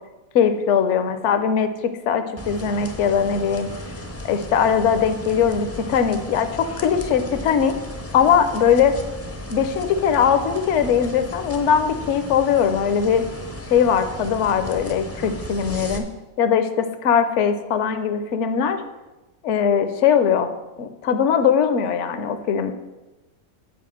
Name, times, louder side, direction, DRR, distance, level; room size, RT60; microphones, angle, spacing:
voice 1, 0.3-3.7 4.2-7.7 8.1-8.9 9.5-13.3 13.7-16.1 16.4-18.8 19.4-22.7, left 7 dB, 60° left, 9 dB, 1.0 m, -20 dB
sound 1, 2.4-16.0, left 1 dB, 15° left, 0.5 m, -35 dB
8.5 x 4.8 x 7.5 m, 1.1 s
omnidirectional pair, 1.5 m